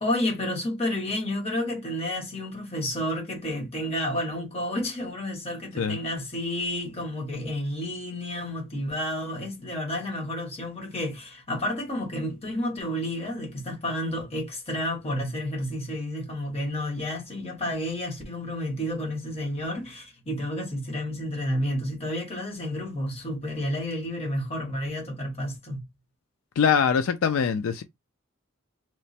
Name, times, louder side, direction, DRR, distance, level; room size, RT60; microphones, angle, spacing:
voice 1, 0.0-25.8, left 1 dB, 30° left, 1.1 m, -30 dB
voice 2, 26.6-27.8, left 6 dB, 75° left, 0.3 m, -23 dB
3.1 x 2.0 x 4.1 m
head